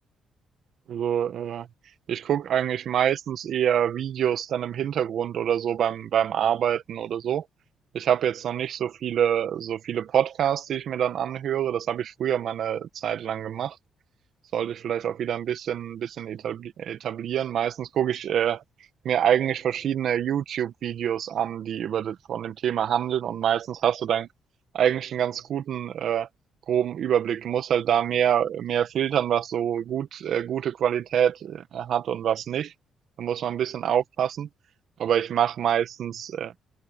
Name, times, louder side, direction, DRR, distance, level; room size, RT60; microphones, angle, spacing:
voice 1, 0.9-1.7 2.1-7.4 7.9-13.8 14.5-18.6 19.0-24.3 24.7-26.3 26.7-32.7 33.2-34.5 35.0-36.5, right 9 dB, 65° right, 1.6 m, -26 dB
cardioid pair, 90°, 0 cm